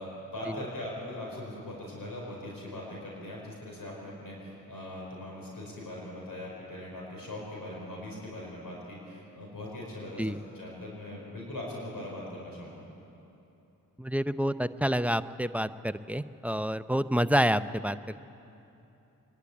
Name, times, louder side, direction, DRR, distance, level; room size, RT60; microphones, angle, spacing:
voice 1, 0.0-12.8, left 1 dB, 70° left, -3 dB, 5.2 m, -40 dB
voice 2, 14.0-18.2, equal, 5° right, 12 dB, 0.6 m, -28 dB
23.5 x 11.5 x 9.7 m, 2.9 s
supercardioid pair, 40°, 34 cm